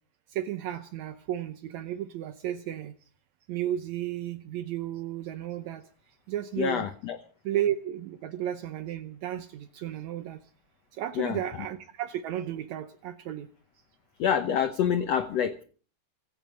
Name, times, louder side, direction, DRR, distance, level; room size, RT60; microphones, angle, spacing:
voice 1, 0.3-2.9 3.5-5.8 6.3-6.9 7.4-10.4 11.0-13.5, right 11 dB, 80° right, 10 dB, 1.6 m, -33 dB
voice 2, 6.6-7.2 11.2-11.4 14.2-15.6, left 8 dB, 80° left, 9 dB, 1.4 m, -27 dB
25.0 x 8.9 x 6.3 m, 0.43 s
omnidirectional pair, 4.3 m